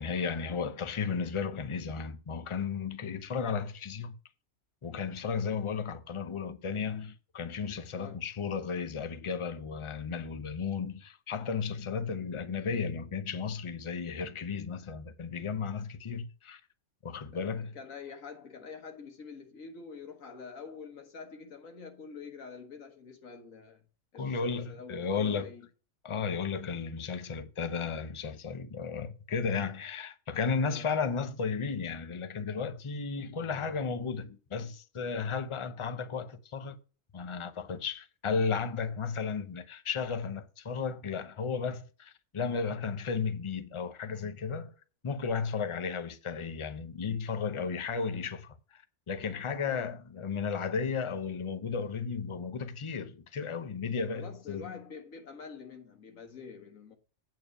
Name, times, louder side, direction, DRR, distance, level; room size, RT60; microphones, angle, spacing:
voice 1, 0.0-4.1 4.8-16.6 17.0-17.7 24.2-25.5 26.0-36.8 37.1-44.7 45.0-54.7, left 5 dB, 35° left, 0.5 m, -34 dB
voice 2, 7.9-8.2 17.3-23.8 24.1-25.7 30.6-30.9 49.7-49.9 54.1-56.9, left 5 dB, 85° left, 1.9 m, -46 dB
8.5 x 4.7 x 6.6 m
omnidirectional pair, 1.4 m